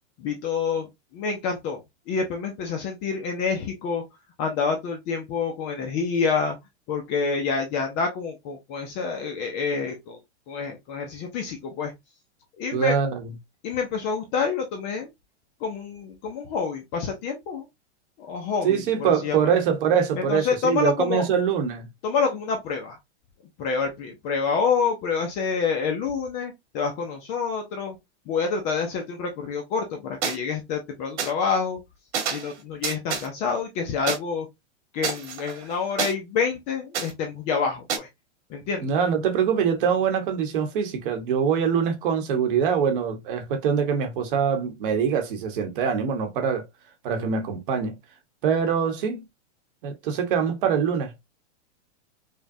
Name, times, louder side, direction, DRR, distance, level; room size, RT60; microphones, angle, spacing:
voice 1, 0.2-0.9 1.1-1.8 2.1-4.0 4.4-6.6 6.9-10.2 10.5-11.9 12.6-13.0 13.6-15.1 15.6-17.7 18.2-19.5 20.2-21.3 22.0-23.0 23.6-28.0 28.3-31.8 32.3-34.5 34.9-38.1 38.5-38.9, left 5 dB, 20° left, 0.4 m, -27 dB
voice 2, 12.7-13.3 18.6-21.9 38.8-46.6 47.0-48.0 48.4-49.2 49.8-51.1, right 7 dB, 50° right, 1.1 m, -24 dB
sound 1, 30.2-30.4 31.2-31.3 32.1-32.5 32.8-33.3 34.1-34.2 35.0-36.1 36.9-37.1 37.9-38.0, right 6 dB, 75° right, 1.6 m, -28 dB
5.1 x 2.2 x 2.6 m
supercardioid pair, 155°, 35 cm